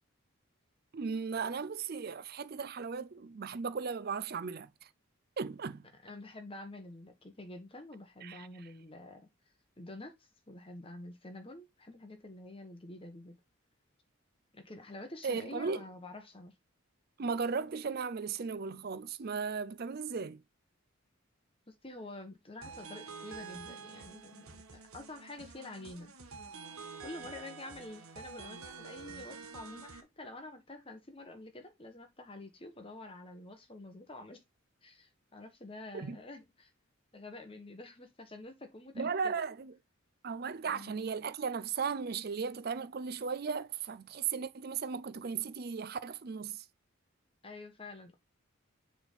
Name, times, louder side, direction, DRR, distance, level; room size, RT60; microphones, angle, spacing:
voice 1, 0.9-4.7 5.4-5.9 8.2-8.5 15.2-15.8 17.2-20.4 35.9-36.2 39.0-39.7 40.2-46.7, right 5 dB, 45° right, 0.4 m, -36 dB
voice 2, 6.0-9.3 9.8-13.4 14.5-16.5 21.7-26.1 27.0-34.4 34.8-36.7 37.1-39.5 40.7-40.9 47.4-48.2, left 2 dB, 25° left, 1.3 m, -48 dB
sound 1, 22.6-30.0, right 5 dB, 85° right, 1.3 m, -48 dB
7.0 x 3.6 x 4.1 m
head